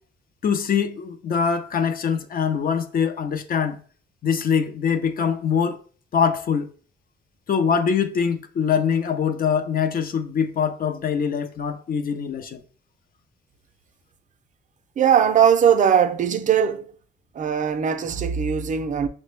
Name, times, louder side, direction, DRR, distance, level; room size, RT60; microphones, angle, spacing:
voice 1, 0.4-3.8 4.2-5.8 6.1-6.7 7.5-12.6, left 7 dB, 50° left, 0.5 m, -23 dB
voice 2, 15.0-16.9 17.3-19.1, right 8 dB, 40° right, 0.5 m, -20 dB
5.8 x 2.1 x 3.1 m
cardioid pair, 90°, 20 cm